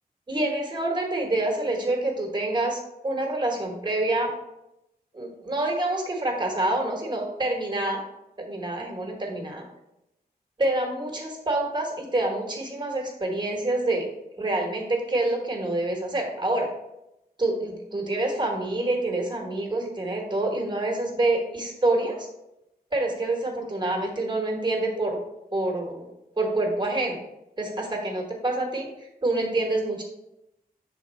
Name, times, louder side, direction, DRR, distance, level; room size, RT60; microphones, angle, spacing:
voice 1, 0.3-4.3 5.1-8.0 8.4-9.6 10.6-14.1 14.4-16.7 17.4-22.3 22.9-25.2 25.5-26.0 26.4-27.2 27.6-28.9 29.2-30.0, right 2 dB, 30° right, 1 dB, 1.1 m, -27 dB
6.5 x 3.6 x 4.1 m, 0.87 s
wide cardioid pair, 175°, 16 cm